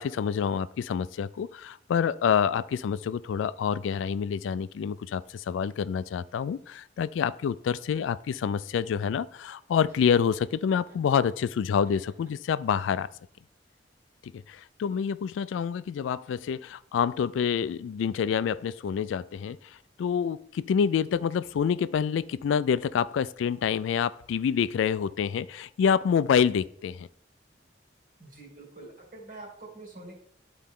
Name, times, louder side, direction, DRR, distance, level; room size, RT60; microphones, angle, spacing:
voice 1, 0.0-13.1 14.2-27.1, left 7 dB, 85° left, 0.3 m, -27 dB
Laughter, 9.9-11.4 11.8-12.7, equal, 15° right, 1.7 m, -57 dB
voice 2, 28.2-30.1, right 2 dB, 45° right, 2.4 m, -45 dB
11.0 x 4.3 x 3.6 m
head